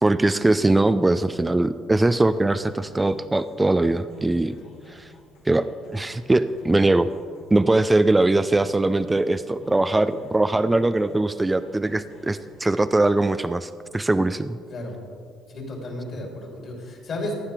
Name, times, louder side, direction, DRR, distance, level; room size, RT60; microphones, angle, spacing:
voice 1, 0.0-4.6 4.9-5.1 5.5-5.7 5.9-7.1 7.5-14.6, right 2 dB, 15° right, 12 dB, 0.4 m, -21 dB
sound 1, 2.3-12.6, left 2 dB, 70° left, 2.2 m, -50 dB
voice 2, 15.5-17.3, left 1 dB, 55° left, -1 dB, 3.2 m, -33 dB
15.5 x 9.6 x 3.5 m, 2.2 s
hypercardioid pair, 55°, 0 cm